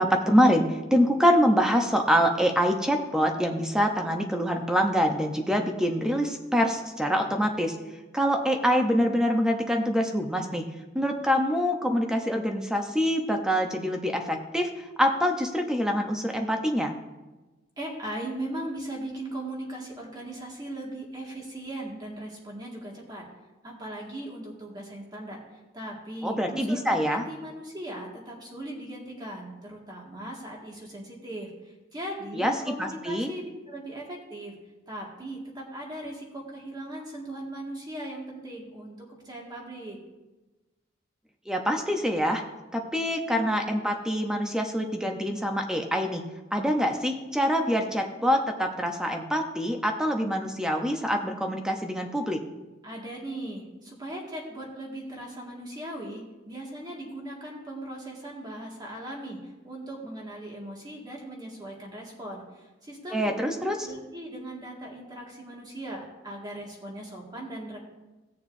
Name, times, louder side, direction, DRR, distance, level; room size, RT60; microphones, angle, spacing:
voice 1, 0.0-7.8 8.1-10.6 10.9-16.9 26.2-27.2 32.3-33.3 41.5-42.4 42.7-46.2 46.5-52.4 63.1-63.9, equal, 5° right, 3 dB, 0.8 m, -25 dB
voice 2, 17.8-23.3 23.6-25.4 25.7-34.5 34.9-40.0 52.8-63.4 63.8-67.8, right 1 dB, 20° right, -2 dB, 2.0 m, -38 dB
18.0 x 6.8 x 2.7 m, 1.1 s
head